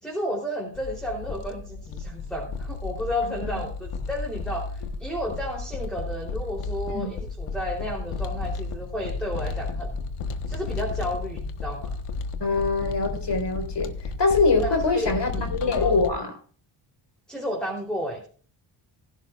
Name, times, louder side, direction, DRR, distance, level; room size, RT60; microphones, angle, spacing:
voice 1, 0.0-10.0 10.5-12.0 14.6-15.9 17.3-18.3, equal, ahead, 0 dB, 3.4 m, -32 dB
sound 1, 0.7-16.1, left 3 dB, 85° left, 1.4 m, -33 dB
voice 2, 3.2-3.6 6.9-7.1 12.4-16.4, left 3 dB, 55° left, 5 dB, 4.4 m, -24 dB
18.0 x 12.0 x 2.5 m, 0.43 s
cardioid pair, 70°, 50 cm